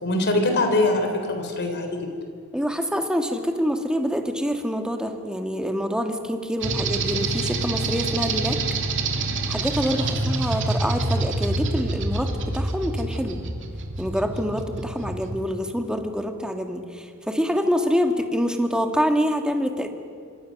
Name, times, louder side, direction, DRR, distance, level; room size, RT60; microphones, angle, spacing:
voice 1, 0.0-2.1 10.0-10.2, left 2 dB, 55° left, 5 dB, 3.9 m, -23 dB
voice 2, 2.5-8.6 9.5-13.4 14.0-19.9, equal, 5° right, 5 dB, 1.8 m, -26 dB
sound 1, 6.6-15.4, right 2 dB, 60° right, 2.6 m, -27 dB
27.0 x 25.5 x 6.5 m, 2.1 s
head